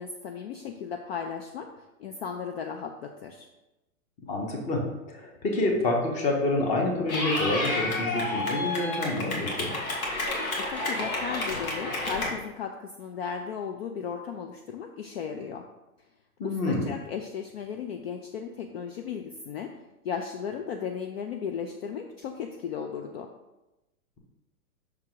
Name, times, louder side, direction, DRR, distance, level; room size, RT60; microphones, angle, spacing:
voice 1, 0.0-3.5 10.6-15.6 16.4-19.7 20.0-23.3, left 7 dB, 45° left, 4 dB, 0.5 m, -36 dB
voice 2, 4.2-4.8 5.1-9.7 16.4-16.9, left 2 dB, 15° left, 1 dB, 0.8 m, -28 dB
Clapping / Cheering, 7.1-12.3, left 2 dB, 70° left, 1.9 m, -30 dB
5.9 x 3.7 x 4.6 m, 0.98 s
hypercardioid pair, 145°, 43 cm